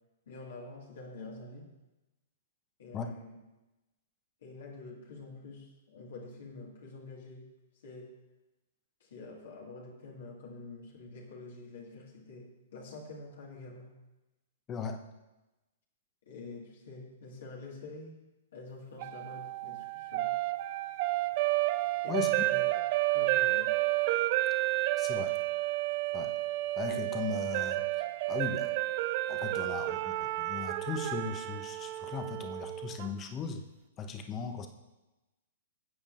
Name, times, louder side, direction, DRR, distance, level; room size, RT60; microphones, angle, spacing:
voice 1, 0.3-1.7 2.8-3.4 4.4-7.5 7.8-8.2 9.0-13.9 16.3-18.2 18.5-20.4 22.0-22.6 23.1-23.8, left 3 dB, 65° left, -2 dB, 2.0 m, -47 dB
voice 2, 14.7-15.0 22.1-22.3 25.0-25.4 26.1-26.3 26.8-28.7 29.3-33.6 34.0-34.7, left 5 dB, 25° left, 6 dB, 1.0 m, -38 dB
sound 1, 19.0-33.1, right 17 dB, 45° right, 0.3 m, -31 dB
15.5 x 8.6 x 2.6 m, 1.0 s
figure-of-eight pair, 110°, 0 cm